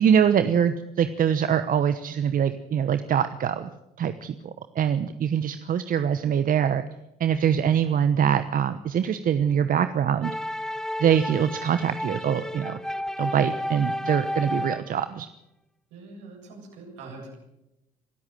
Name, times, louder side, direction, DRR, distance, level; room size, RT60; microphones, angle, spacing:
voice 1, 0.0-3.7 4.0-4.3 4.7-6.8 7.2-10.3 11.0-12.8 13.2-15.3, right 8 dB, 50° right, 11 dB, 1.1 m, -23 dB
sound 1, 10.2-15.0, left 1 dB, 5° left, 0.9 m, -32 dB
voice 2, 15.9-17.3, right 3 dB, 75° right, 1 dB, 7.7 m, -43 dB
25.0 x 13.5 x 7.7 m, 0.89 s
hypercardioid pair, 60°, 18 cm